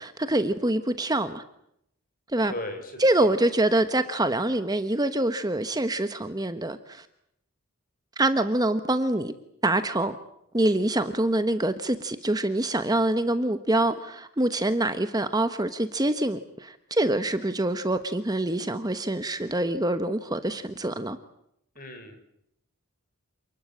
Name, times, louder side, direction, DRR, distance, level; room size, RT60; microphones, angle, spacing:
voice 1, 0.0-1.4 2.3-2.5 3.0-7.1 8.2-9.3 9.6-10.2 10.5-21.2, right 1 dB, 15° right, 1.1 m, -25 dB
voice 2, 2.5-3.3 21.7-22.2, left 1 dB, 40° left, 6.2 m, -37 dB
29.0 x 20.0 x 8.6 m
head